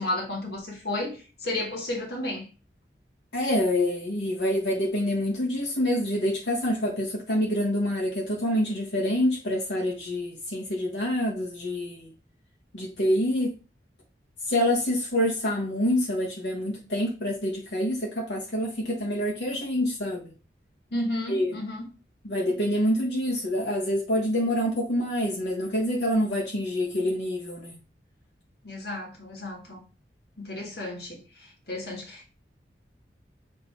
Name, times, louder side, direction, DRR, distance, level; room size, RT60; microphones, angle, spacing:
voice 1, 0.0-2.5 20.9-21.9 28.6-29.8 30.4-32.3, left 1 dB, 65° left, 1.6 m, -33 dB
voice 2, 3.3-12.1 12.7-13.5 14.5-20.3 21.3-21.5 22.2-27.8, left 1 dB, 80° left, 1.3 m, -26 dB
7.8 x 2.9 x 4.2 m
head